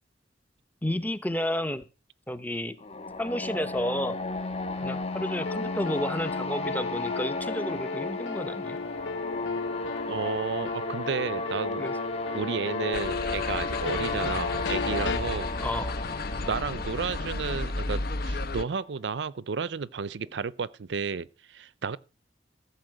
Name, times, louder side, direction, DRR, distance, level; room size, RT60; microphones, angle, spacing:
voice 1, 0.8-1.9 2.3-2.8 3.2-4.2 4.8-8.8 11.8-12.0 14.2-14.4 15.6-16.0, left 1 dB, 10° left, 0.8 m, -31 dB
sound 1, 2.8-18.6, left 3 dB, 35° left, 1.3 m, -34 dB
sound 2, 5.5-15.2, left 4 dB, 70° left, 0.5 m, -35 dB
voice 2, 10.1-11.9 12.3-15.5 16.5-22.0, right 5 dB, 70° right, 0.5 m, -32 dB
sound 3, 12.9-18.6, left 2 dB, 55° left, 0.9 m, -33 dB
14.5 x 5.4 x 7.8 m
head